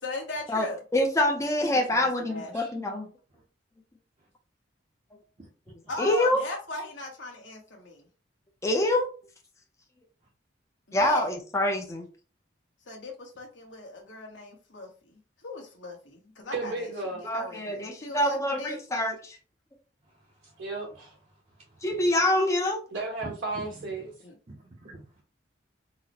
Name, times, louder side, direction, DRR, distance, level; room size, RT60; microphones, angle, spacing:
voice 1, 0.0-0.8 1.7-2.5 5.9-8.1 10.9-11.3 12.9-18.8 24.2-24.3, left 2 dB, 70° left, 0 dB, 1.1 m, -39 dB
voice 2, 0.9-3.1 6.0-6.4 8.6-9.1 10.9-12.1 17.3-19.4 21.8-22.8, left 1 dB, 15° left, 2 dB, 0.5 m, -25 dB
voice 3, 16.5-17.2 20.6-21.1 22.9-24.1, right 3 dB, 80° right, -3 dB, 1.2 m, -34 dB
voice 4, 20.0-20.6 21.5-22.0 23.2-23.6 24.8-25.0, right 2 dB, 35° right, -2 dB, 0.6 m, -46 dB
3.9 x 2.0 x 2.8 m, 0.36 s
head